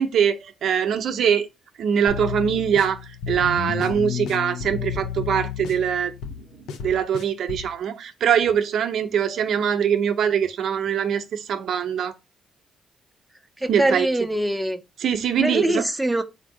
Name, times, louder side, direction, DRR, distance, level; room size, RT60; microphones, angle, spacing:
voice 1, 0.0-1.5 1.8-3.0 3.3-6.1 6.8-12.1 13.7-14.1 15.0-15.8, right 8 dB, 65° right, 0.5 m, -22 dB
sound 1, 2.1-7.7, left 8 dB, 85° left, 0.5 m, -32 dB
voice 2, 13.6-14.8 15.4-16.2, right 1 dB, 5° right, 0.5 m, -23 dB
3.6 x 2.6 x 4.6 m
cardioid pair, 90°, 0 cm